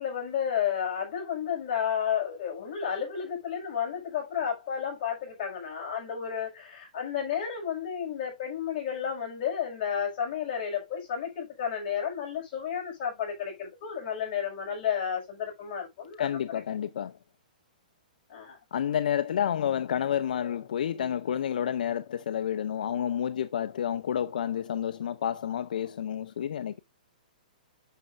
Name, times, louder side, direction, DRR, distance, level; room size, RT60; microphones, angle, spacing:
voice 1, 0.0-16.4 18.3-18.6, left 8 dB, 25° left, 5.8 m, -32 dB
voice 2, 16.2-17.1 18.7-26.8, left 9 dB, 65° left, 0.6 m, -30 dB
9.1 x 6.6 x 2.6 m
hypercardioid pair, 170°, 5 cm